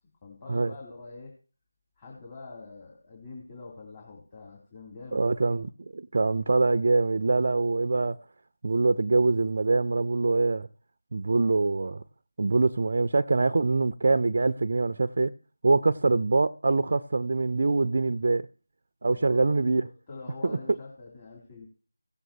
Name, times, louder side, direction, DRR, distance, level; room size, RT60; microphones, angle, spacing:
voice 1, 0.2-1.3 2.0-5.2 19.0-19.5 19.8-21.7, left 3 dB, 20° left, 2.8 m, -45 dB
voice 2, 5.1-8.2 8.6-10.7 11.1-12.0 12.4-15.3 15.6-18.5 19.0-19.9 20.4-20.6, right 3 dB, 50° right, 0.4 m, -24 dB
17.0 x 7.6 x 2.8 m
figure-of-eight pair, 165°, 0 cm